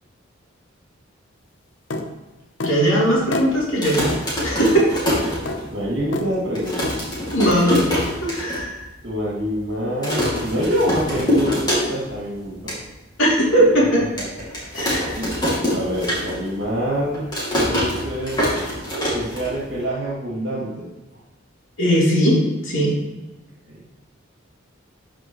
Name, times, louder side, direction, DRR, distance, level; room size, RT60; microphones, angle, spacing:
sound 1, 1.9-2.1 2.6-2.8 3.3-3.5 4.1-4.2 4.8-4.9 5.5-5.6 6.1-6.3 6.8-7.0 7.5-7.6, left 2 dB, 65° left, 0.8 m, -27 dB
voice 1, 2.6-4.1 4.4-4.8 7.3-7.8 8.2-8.8 13.2-14.0 14.7-15.1 21.8-22.4 22.6-22.9, right 1 dB, 85° left, -5 dB, 2.9 m, -18 dB
sound 2, 3.6-5.9 6.3-6.4 6.5-8.6 9.0-9.1 9.3-9.6 10.0-12.2 12.5-12.8 13.3-13.4 14.2-16.6 16.9-19.8, left 1 dB, 20° left, 2.3 m, -24 dB
voice 2, 5.7-6.8 9.0-12.8 15.1-15.4 15.7-17.2 17.6-18.4 19.1-20.9 23.7-23.9, equal, 60° right, -5 dB, 2.3 m, -26 dB
12.0 x 5.0 x 3.1 m, 1.1 s
head